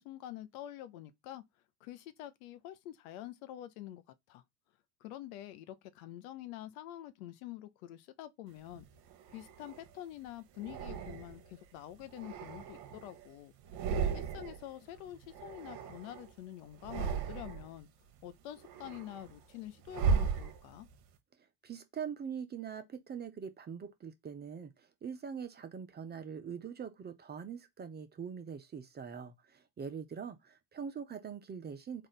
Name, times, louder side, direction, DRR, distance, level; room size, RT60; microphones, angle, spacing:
voice 1, 0.0-1.4 1.8-4.0 4.3-4.4 5.0-8.9 9.3-13.5 14.1-17.9 18.2-20.9, left 13 dB, 60° left, 0.8 m, -47 dB
sound 1, 8.7-9.9 10.6-11.5 12.0-13.3 13.6-14.7 14.9-16.3 16.7-17.8 18.2-21.0, right 6 dB, 55° right, 1.0 m, -36 dB
voice 2, 21.6-32.1, right 7 dB, 20° right, 0.6 m, -43 dB
3.6 x 2.6 x 4.1 m
hypercardioid pair, 80°, 48 cm